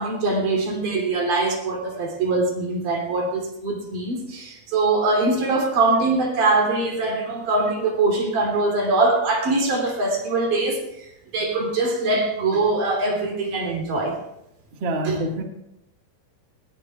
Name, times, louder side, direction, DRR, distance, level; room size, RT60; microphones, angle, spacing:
voice 1, 0.0-11.1 11.3-14.1 15.0-15.2, right 3 dB, 45° right, 0 dB, 4.2 m, -22 dB
voice 2, 14.8-15.4, right 1 dB, 65° right, 1 dB, 1.1 m, -26 dB
21.0 x 19.5 x 2.4 m, 0.85 s
omnidirectional pair, 5.4 m